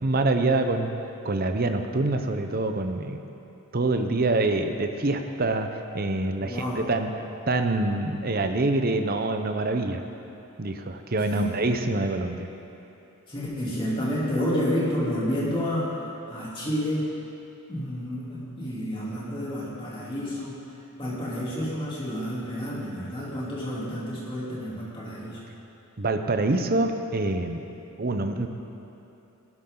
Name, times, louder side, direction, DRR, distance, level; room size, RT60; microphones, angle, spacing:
voice 1, 0.0-0.9 1.2-3.2 3.7-7.1 7.5-10.0 10.6-12.5 26.0-27.6 28.0-28.5, right 2 dB, 45° right, 6 dB, 0.8 m, -25 dB
voice 2, 6.4-6.9 11.2-11.5 13.3-17.1 17.7-20.6 21.0-25.4, equal, 25° left, -7 dB, 3.2 m, -30 dB
18.0 x 12.0 x 3.9 m, 2.9 s
head